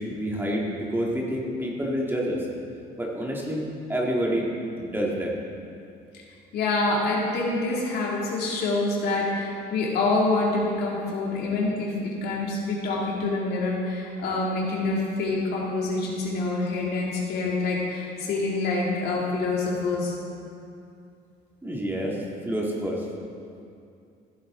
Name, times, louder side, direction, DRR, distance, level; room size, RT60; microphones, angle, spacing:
voice 1, 0.1-2.4 3.0-3.6 3.9-4.5 4.8-5.4 21.6-22.2 22.5-23.1, equal, 10° right, -3 dB, 1.9 m, -28 dB
voice 2, 6.5-20.1, left 2 dB, 70° left, -3 dB, 2.5 m, -26 dB
15.0 x 7.8 x 3.7 m, 2.5 s
cardioid pair, 110°, 17 cm